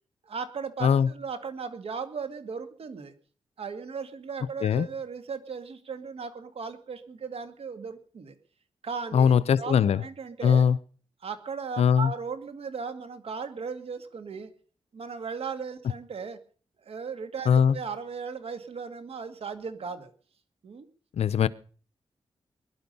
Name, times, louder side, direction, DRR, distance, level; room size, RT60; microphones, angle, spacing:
voice 1, 0.3-3.1 3.6-8.3 8.8-10.6 11.2-14.5 14.9-16.4 16.8-20.1 20.6-20.9, right 5 dB, 65° right, 2.1 m, -37 dB
voice 2, 9.1-10.0 10.4-10.8 11.8-12.1 17.5-17.8 21.2-21.5, left 7 dB, 80° left, 0.7 m, -21 dB
21.5 x 11.5 x 5.4 m
cardioid pair, 90°, 11 cm